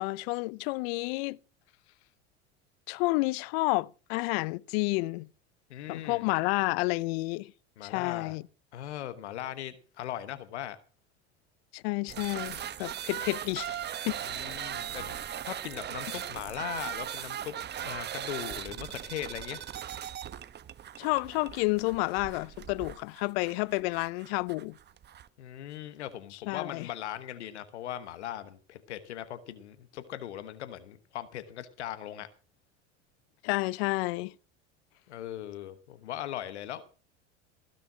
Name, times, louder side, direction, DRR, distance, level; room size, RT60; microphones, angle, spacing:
voice 1, 0.0-1.4 2.9-5.3 5.9-7.5 7.8-8.4 11.7-14.3 21.0-24.8 26.5-26.9 33.4-34.3, left 23 dB, 65° left, 0.6 m, -30 dB
voice 2, 5.7-6.3 7.8-8.4 8.7-10.8 14.2-17.5 17.8-19.6 25.4-32.3 35.1-36.8, left 11 dB, 85° left, 1.2 m, -39 dB
sound 1, 12.1-25.3, right 10 dB, 30° right, 0.8 m, -39 dB
16.0 x 6.8 x 6.0 m
hypercardioid pair, 85°, 34 cm